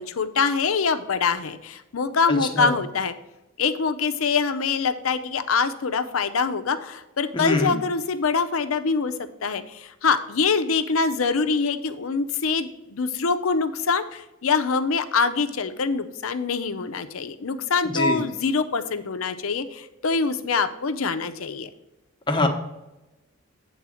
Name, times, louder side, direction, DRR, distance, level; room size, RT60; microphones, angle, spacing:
voice 1, 0.0-3.1 3.6-9.1 9.4-21.7, left 5 dB, 75° left, 10 dB, 0.6 m, -24 dB
voice 2, 2.3-2.7 7.3-7.7 17.8-18.2 22.3-22.5, left 2 dB, 25° left, 3 dB, 1.0 m, -24 dB
8.2 x 3.9 x 6.3 m, 0.98 s
head